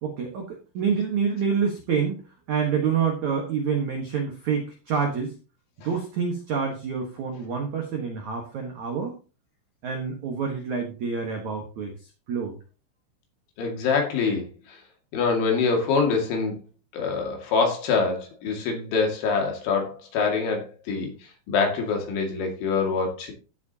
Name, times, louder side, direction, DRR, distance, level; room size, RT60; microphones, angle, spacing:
voice 1, 0.0-5.4 5.8-9.2 9.8-11.9 12.3-12.5, right 6 dB, 85° right, 2 dB, 1.6 m, -27 dB
voice 2, 13.6-14.5 15.1-16.6 16.9-21.1 21.5-23.3, left 4 dB, 65° left, 2 dB, 4.4 m, -25 dB
16.0 x 7.3 x 2.9 m, 0.33 s
omnidirectional pair, 5.9 m